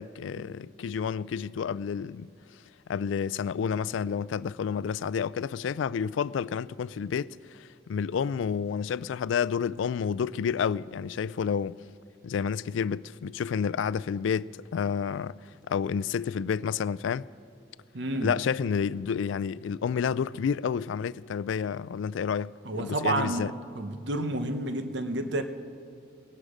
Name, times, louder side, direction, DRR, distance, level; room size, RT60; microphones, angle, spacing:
voice 1, 0.0-2.3 2.9-11.8 12.2-17.3 18.2-23.5, left 7 dB, 80° left, 0.3 m, -30 dB
voice 2, 17.9-18.3 22.7-25.4, right 2 dB, 65° right, 0.9 m, -30 dB
20.0 x 11.5 x 5.0 m
head